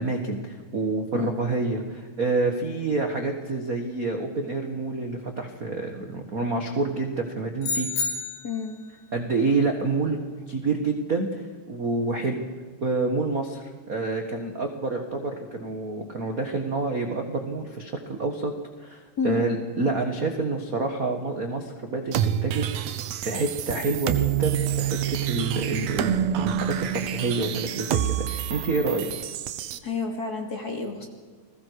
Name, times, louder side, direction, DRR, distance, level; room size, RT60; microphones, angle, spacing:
voice 1, 0.0-7.9 9.1-10.2 10.5-12.5 12.8-18.5 18.8-22.9 23.2-29.1, right 3 dB, 40° right, 4 dB, 1.3 m, -28 dB
sound 1, 7.6-8.7, left 4 dB, 90° left, 5.3 m, -29 dB
voice 2, 8.4-8.9 19.2-19.5 29.8-31.1, left 4 dB, 30° left, 2 dB, 2.6 m, -30 dB
sound 2, 22.1-29.8, right 10 dB, 70° right, 1.8 m, -27 dB
30.0 x 21.0 x 4.8 m, 1.5 s
omnidirectional pair, 3.9 m